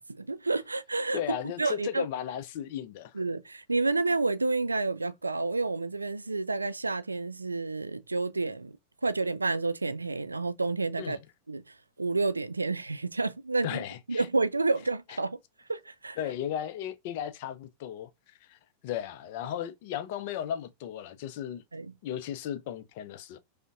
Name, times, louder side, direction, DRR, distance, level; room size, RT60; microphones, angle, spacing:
voice 1, 0.0-1.2 1.6-2.1 3.1-8.7 9.0-11.2 11.5-13.8 14.1-15.4 15.7-16.2 21.7-21.9, right 3 dB, 80° right, 0.3 m, -30 dB
voice 2, 1.1-3.1 11.0-11.2 13.6-14.3 15.1-15.2 16.2-21.6 22.0-23.4, left 10 dB, 50° left, 0.5 m, -36 dB
5.1 x 2.1 x 2.4 m
figure-of-eight pair, 90°, 0 cm